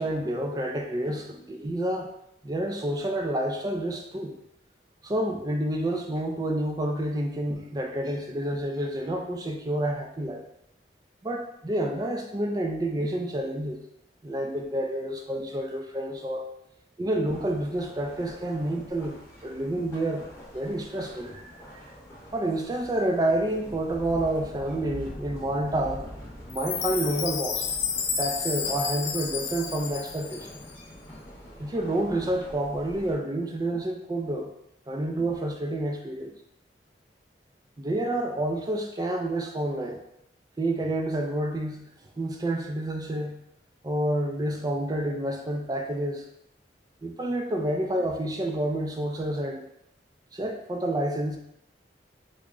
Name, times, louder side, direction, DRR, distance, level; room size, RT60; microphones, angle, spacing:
voice 1, 0.0-2.1 2.4-4.3 5.0-10.4 11.2-13.8 14.2-16.4 17.0-19.2 19.4-20.3 20.5-21.5 22.3-26.0 26.5-27.7 28.2-30.6 31.6-34.5 34.9-36.3 37.8-40.0 40.6-41.8 42.2-43.4 43.8-46.2 47.0-49.6 50.3-51.4, right 1 dB, 20° right, 2 dB, 0.4 m, -29 dB
sound 1, 17.2-33.1, left 1 dB, 10° left, 0.9 m, -45 dB
Chime, 26.5-30.7, left 7 dB, 80° left, 0.5 m, -31 dB
3.6 x 2.1 x 3.6 m, 0.80 s
head